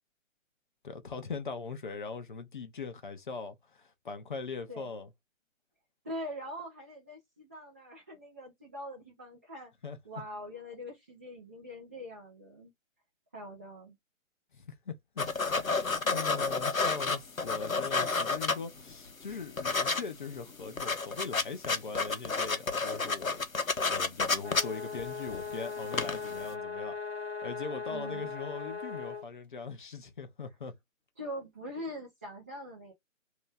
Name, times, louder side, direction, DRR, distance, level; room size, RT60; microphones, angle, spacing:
voice 1, 0.8-5.1 9.8-10.0 14.5-30.7, left 5 dB, 40° left, 0.8 m, -41 dB
voice 2, 6.0-9.7 10.0-12.7 13.3-14.0 27.9-28.3 31.2-32.9, equal, 10° right, 0.6 m, -43 dB
sound 1, 15.2-18.9 19.3-20.0 20.3-20.4 20.6-25.5 25.9-26.3, left 4 dB, 85° left, 1.0 m, -30 dB
sound 2, 24.4-29.3, left 5 dB, 55° left, 1.4 m, -39 dB
3.1 x 2.9 x 3.3 m
figure-of-eight pair, 140°, 40 cm